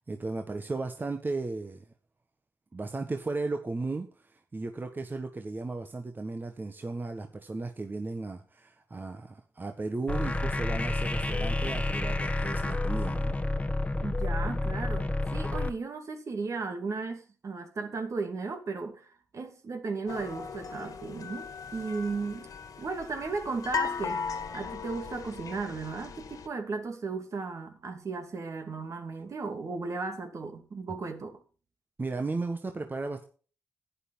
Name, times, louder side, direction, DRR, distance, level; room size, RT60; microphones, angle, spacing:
voice 1, 0.1-1.9 2.7-4.1 4.5-13.3 32.0-33.2, right 3 dB, 30° right, 1.5 m, -35 dB
sound 1, 10.1-15.7, left 2 dB, 20° left, 1.3 m, -29 dB
voice 2, 14.0-22.5 22.8-24.2 24.5-31.4, right 4 dB, 55° right, 2.6 m, -35 dB
sound 2, 20.1-26.5, left 6 dB, 70° left, 2.0 m, -37 dB
11.0 x 9.8 x 5.4 m
cardioid pair, 65°, 6 cm